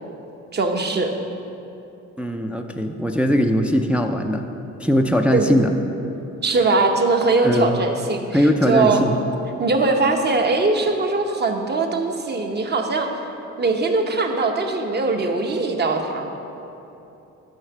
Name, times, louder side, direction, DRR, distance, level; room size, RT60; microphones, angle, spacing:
voice 1, 0.5-1.1 5.3-5.6 6.4-9.0 9.6-13.1 13.6-16.3, right 3 dB, 35° right, 4 dB, 0.9 m, -21 dB
voice 2, 2.2-4.4 4.8-5.7 7.4-7.8 8.3-9.2, equal, 5° right, 3 dB, 0.4 m, -20 dB
6.4 x 5.6 x 7.2 m, 2.9 s
cardioid pair, 90°, 30 cm